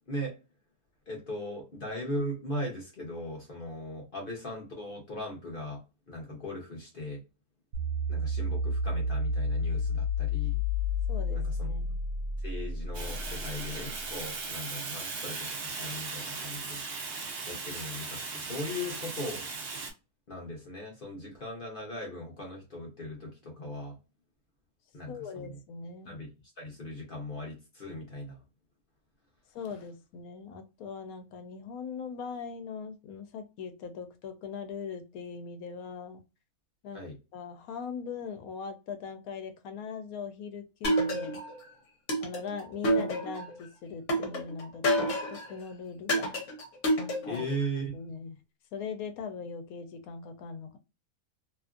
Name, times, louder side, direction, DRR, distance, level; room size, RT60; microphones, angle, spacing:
voice 1, 1.1-5.8 6.1-7.2 8.1-10.6 11.3-11.7 12.4-17.1 17.5-19.4 20.3-24.0 24.9-25.6 26.1-26.3 26.6-28.4 36.9-37.2 47.3-47.9, equal, 45° left, 0.8 m, -38 dB
sound 1, 7.7-14.0, left 2 dB, 75° right, 1.1 m, -31 dB
voice 2, 11.1-12.0 25.1-26.2 29.5-36.2 36.8-37.0 37.3-41.4 42.2-46.3 47.2-47.5 47.9-48.3 48.7-50.8, left 6 dB, 80° left, 1.1 m, -40 dB
Fire, 12.9-19.9, right 4 dB, 55° right, 0.7 m, -38 dB
sound 2, 40.8-41.6 42.1-43.5 44.1-45.5 46.1-47.5, equal, 60° left, 1.1 m, -28 dB
2.8 x 2.5 x 2.3 m
omnidirectional pair, 1.5 m